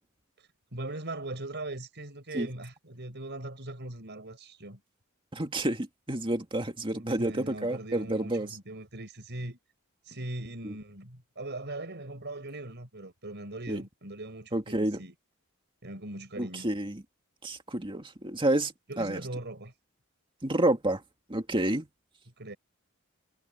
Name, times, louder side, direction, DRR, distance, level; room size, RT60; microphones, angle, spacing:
voice 1, 0.7-4.8 6.9-9.6 10.1-15.1 15.8-16.7 18.9-19.7 22.4-22.6, right 2 dB, 50° right, 5.6 m, -40 dB
voice 2, 5.3-8.5 10.6-10.7 13.7-13.8 14.5-15.0 16.4-17.0 17.4-19.2 20.4-21.0 21.3-21.9, right 1 dB, 25° right, 2.2 m, -29 dB
head